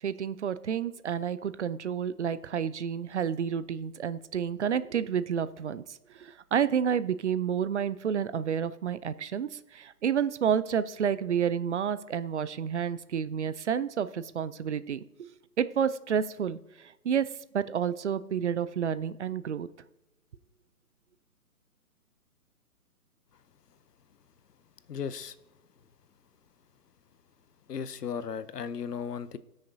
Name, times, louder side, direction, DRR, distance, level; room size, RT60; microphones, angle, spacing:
voice 1, 0.0-15.3 15.6-19.7, right 8 dB, 50° right, 15 dB, 0.5 m, -30 dB
voice 2, 24.9-25.3 27.7-29.4, left 7 dB, 85° left, 15 dB, 0.8 m, -35 dB
18.5 x 6.5 x 2.7 m, 0.96 s
hypercardioid pair, 145°, 46 cm